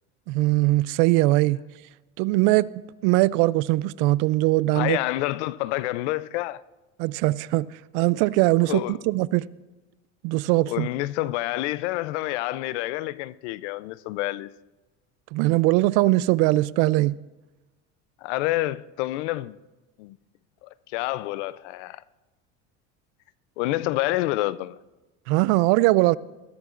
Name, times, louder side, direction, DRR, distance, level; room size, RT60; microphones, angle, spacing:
voice 1, 0.3-1.6 2.2-2.7 3.0-5.0 7.0-7.7 7.9-9.5 10.2-10.9 15.3-17.2 25.3-26.2, right 19 dB, 70° right, 0.5 m, -21 dB
voice 2, 4.7-6.6 8.7-9.0 10.6-14.5 18.2-19.6 20.0-20.2 20.6-22.0 23.6-24.8, left 17 dB, 90° left, 0.6 m, -28 dB
21.0 x 14.0 x 2.5 m
supercardioid pair, 125°, 33 cm